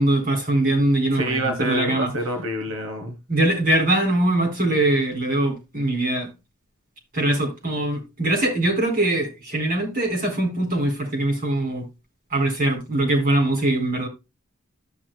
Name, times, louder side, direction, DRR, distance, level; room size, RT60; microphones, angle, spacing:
voice 1, 0.0-2.1 3.3-6.3 7.1-11.9 12.3-14.1, right 1 dB, 45° right, 4.4 m, -22 dB
voice 2, 1.1-3.2, right 1 dB, 70° right, 1.2 m, -27 dB
14.0 x 6.2 x 2.3 m
head